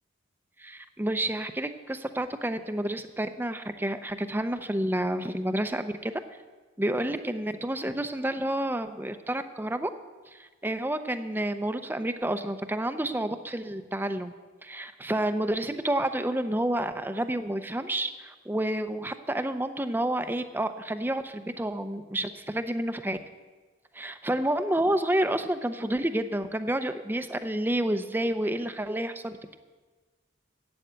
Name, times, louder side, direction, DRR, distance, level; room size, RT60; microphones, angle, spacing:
voice 1, 0.6-6.2 6.8-9.9 10.3-14.3 14.6-23.2 23.9-29.6, right 1 dB, 10° right, 9 dB, 0.6 m, -29 dB
12.0 x 8.8 x 8.0 m, 1.3 s
head